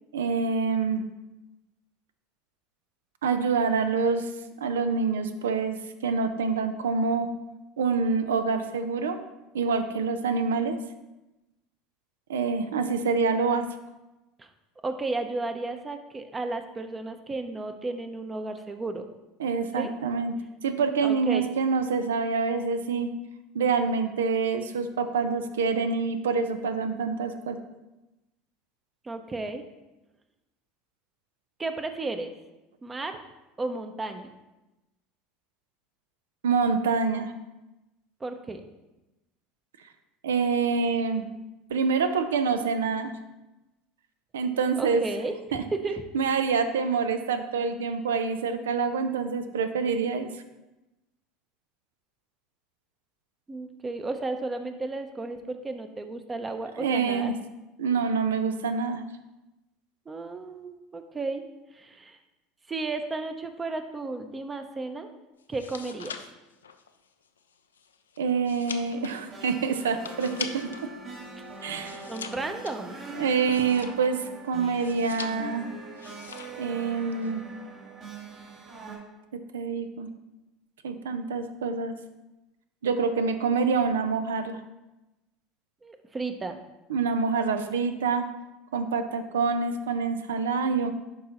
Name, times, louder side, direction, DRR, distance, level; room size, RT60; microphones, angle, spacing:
voice 1, 0.1-1.0 3.2-4.3 4.6-7.3 7.8-9.2 9.5-10.8 12.3-13.7 19.4-20.3 20.6-23.1 23.5-27.6 36.4-37.3 40.2-41.3 41.7-43.1 44.3-45.0 45.5-45.6 46.1-50.3 56.8-57.3 57.8-59.0 68.2-70.7 71.6-72.0 73.1-75.7 76.6-77.4 79.3-80.1 80.8-81.9 82.8-84.6 86.9-88.3 88.7-90.9, right 5 dB, 80° right, 9 dB, 0.5 m, -26 dB
voice 2, 14.8-19.0 19.7-19.9 21.0-21.5 29.0-29.6 31.6-32.3 32.8-33.2 33.6-34.3 38.2-38.6 44.8-45.3 45.7-46.0 53.5-57.3 60.1-61.4 61.7-62.2 62.7-65.1 65.5-66.2 72.1-73.3 85.8-86.6, right 3 dB, 20° right, 7 dB, 0.7 m, -33 dB
sound 1, 65.4-70.9 71.2-74.3 74.7-75.6 76.0-76.7 76.9-77.3, left 6 dB, 90° left, 0.4 m, -42 dB
sound 2, 68.6-79.0, right 3 dB, 50° right, 2.1 m, -42 dB
11.0 x 3.7 x 3.0 m, 1.0 s
hypercardioid pair, 75°, 0 cm